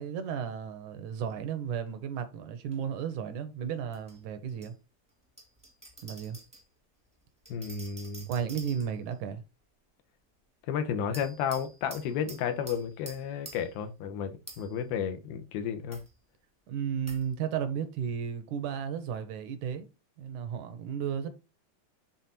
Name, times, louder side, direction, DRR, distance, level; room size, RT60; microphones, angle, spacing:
voice 1, 0.0-4.8 6.0-6.4 8.3-9.4 16.7-19.9 20.2-21.3, right 8 dB, 75° right, 2.0 m, -34 dB
sound 1, 2.7-2.8 3.9-4.7 5.4-6.7 7.4-9.1 11.1-13.8 14.5-14.8 15.9-16.1 17.1-17.3, right 2 dB, 5° right, 0.8 m, -49 dB
voice 2, 7.5-8.3 10.7-16.0, left 7 dB, 85° left, 2.9 m, -32 dB
8.0 x 3.9 x 4.2 m
omnidirectional pair, 4.2 m